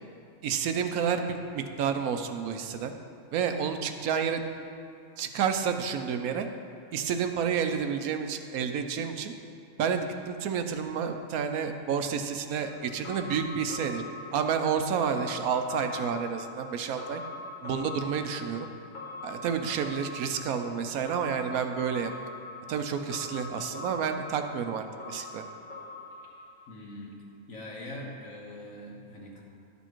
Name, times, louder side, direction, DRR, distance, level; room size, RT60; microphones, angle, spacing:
voice 1, 0.4-2.9 3.3-4.4 5.2-6.5 6.9-9.3 9.8-14.0 14.3-17.2 17.6-18.7 19.2-22.1 22.7-25.4, right 7 dB, 85° right, 7 dB, 1.1 m, -30 dB
sound 1, 12.6-26.8 27.1-27.2, left 2 dB, 35° left, 1.5 m, -43 dB
voice 2, 26.7-27.2 27.5-29.4, left 1 dB, 70° left, -2 dB, 1.8 m, -42 dB
11.5 x 7.0 x 4.5 m, 2.5 s
omnidirectional pair, 1.5 m